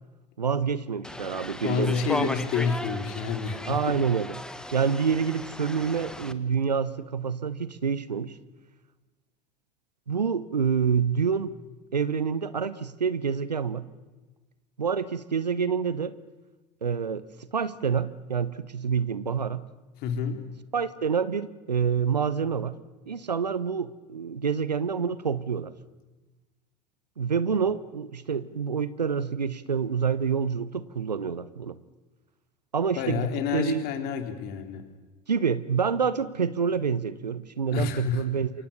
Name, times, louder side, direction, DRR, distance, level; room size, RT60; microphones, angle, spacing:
voice 1, 0.4-2.3 3.7-4.4 4.7-8.4 10.1-11.5 11.9-13.9 14.8-16.2 16.8-17.2 17.5-19.6 20.7-22.8 23.1-25.7 27.2-31.8 32.7-33.8 35.3-38.5, right 6 dB, 85° right, 16 dB, 0.9 m, -27 dB
sound 1, 1.0-6.3, left 1 dB, 5° left, 1.4 m, -36 dB
voice 2, 1.6-4.0 20.0-20.4 33.0-34.8 37.7-38.2, left 7 dB, 50° left, 6 dB, 3.5 m, -29 dB
28.0 x 24.0 x 6.8 m, 1.2 s
figure-of-eight pair, 75°, 21 cm